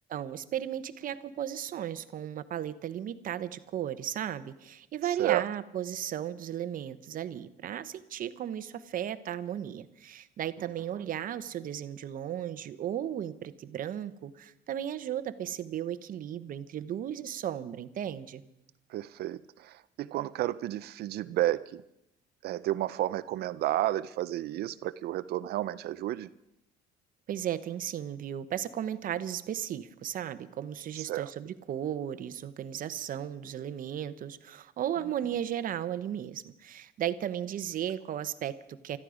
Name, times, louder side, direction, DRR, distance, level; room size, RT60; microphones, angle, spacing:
voice 1, 0.1-18.4 27.3-39.0, right 10 dB, 55° right, 12 dB, 0.9 m, -35 dB
voice 2, 18.9-21.8 22.4-26.3 31.0-31.3, right 14 dB, 70° right, 14 dB, 0.6 m, -31 dB
20.5 x 13.5 x 5.0 m, 0.84 s
cardioid pair, 110°, 17 cm